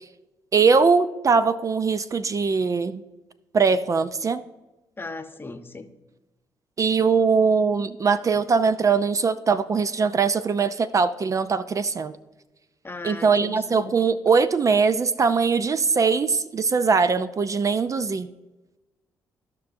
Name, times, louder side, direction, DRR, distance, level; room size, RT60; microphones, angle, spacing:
voice 1, 0.5-3.0 3.5-4.4 6.8-12.1 13.0-18.3, right 5 dB, 40° right, 12 dB, 0.4 m, -21 dB
voice 2, 5.0-5.9 12.8-13.9, left 3 dB, 25° left, 8 dB, 0.9 m, -37 dB
15.0 x 5.6 x 2.6 m, 1.1 s
supercardioid pair, 55°, 8 cm